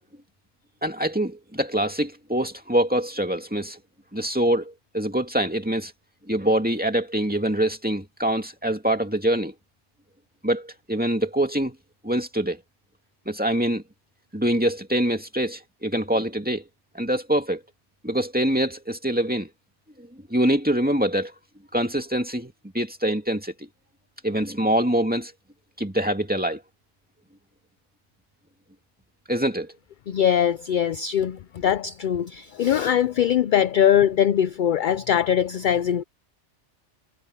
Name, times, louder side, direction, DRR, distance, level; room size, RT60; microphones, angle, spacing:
voice 1, 0.8-3.8 4.1-5.9 6.3-9.5 10.4-11.8 12.0-12.6 13.3-13.8 14.3-16.7 16.9-17.6 18.0-19.5 20.0-21.3 21.7-23.7 24.2-25.3 25.8-26.6 29.3-29.7, right 1 dB, 5° right, 2.2 m, -24 dB
voice 2, 30.1-36.0, left 9 dB, 60° left, 0.5 m, -21 dB
omnidirectional pair, 1.2 m